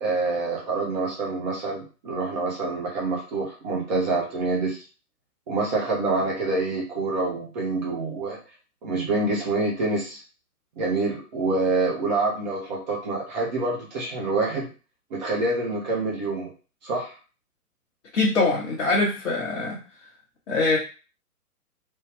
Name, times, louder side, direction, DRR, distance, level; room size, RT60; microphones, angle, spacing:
voice 1, 0.0-4.8 5.5-8.4 8.8-10.2 10.8-14.7 15.1-16.5 16.8-17.1, right 3 dB, 30° right, -3 dB, 0.9 m, -26 dB
voice 2, 18.1-19.8 20.5-20.8, left 3 dB, 55° left, -3 dB, 1.0 m, -23 dB
3.2 x 2.3 x 3.4 m, 0.35 s
figure-of-eight pair, 125°, 46 cm